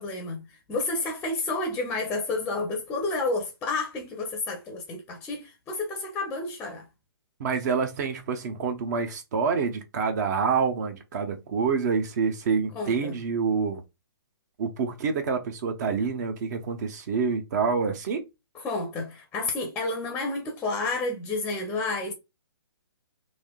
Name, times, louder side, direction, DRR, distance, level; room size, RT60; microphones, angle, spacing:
voice 1, 0.0-6.9 12.7-13.2 18.5-22.1, left 3 dB, 10° left, 0.6 m, -30 dB
voice 2, 7.4-13.8 14.6-18.3, right 5 dB, 45° right, 0.7 m, -27 dB
3.3 x 2.7 x 2.2 m
hypercardioid pair, 140°, 13 cm